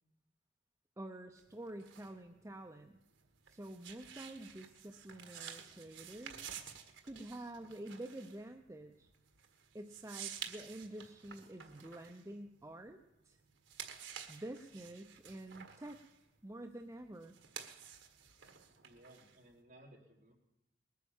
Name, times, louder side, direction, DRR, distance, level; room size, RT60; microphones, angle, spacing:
voice 1, 1.0-3.0 3.5-6.5 7.0-9.1 9.7-13.4 14.3-16.0 16.4-17.4, right 1 dB, 15° right, 4 dB, 0.6 m, -48 dB
sound 1, 1.4-13.1 13.5-19.6, right 8 dB, 70° right, 1.6 m, -51 dB
voice 2, 18.8-20.3, right 1 dB, 40° right, -1 dB, 3.4 m, -60 dB
20.5 x 9.4 x 7.2 m, 0.91 s
head